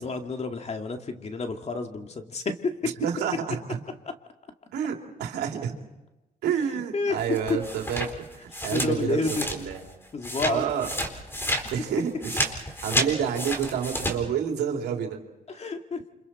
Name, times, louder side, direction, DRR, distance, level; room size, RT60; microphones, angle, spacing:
voice 1, 0.0-2.7 6.9-7.2 7.5-7.6 8.7-9.4 10.1-10.7 15.5-16.0, left 3 dB, 40° left, 5 dB, 2.2 m, -29 dB
voice 2, 3.0-3.8 4.7-5.7 6.4-8.1 8.4-9.8 10.4-10.9 11.7-12.5 12.8-15.2, right 8 dB, 90° right, 2 dB, 2.9 m, -29 dB
sound 1, 7.2-9.9 10.2-14.1, equal, 15° left, 4.1 m, -30 dB
29.0 x 26.0 x 4.3 m, 1.0 s
cardioid pair, 80°, 16 cm